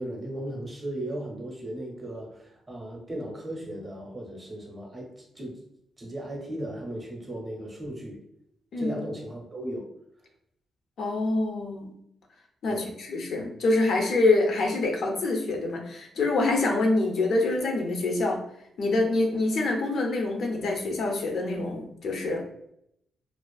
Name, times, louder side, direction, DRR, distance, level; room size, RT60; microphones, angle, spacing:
voice 1, 0.0-5.6 6.0-8.2 8.8-9.9 12.7-12.9, right 1 dB, 20° right, -1 dB, 0.6 m, -36 dB
voice 2, 11.0-11.9 12.6-18.4 18.8-22.4, left 2 dB, 55° left, 2 dB, 0.4 m, -26 dB
2.4 x 2.3 x 2.3 m, 0.75 s
wide cardioid pair, 170°, 0 cm